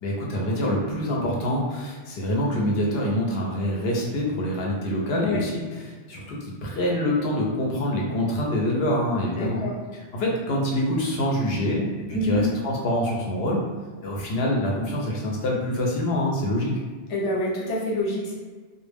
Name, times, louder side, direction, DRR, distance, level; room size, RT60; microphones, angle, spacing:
voice 1, 0.0-9.6 9.9-13.6 14.0-16.7, left 1 dB, 65° left, -2 dB, 0.8 m, -25 dB
voice 2, 9.4-9.7 12.1-12.4 17.1-18.3, left 1 dB, 45° left, -5 dB, 0.4 m, -26 dB
2.1 x 2.0 x 3.3 m, 1.4 s
omnidirectional pair, 1.2 m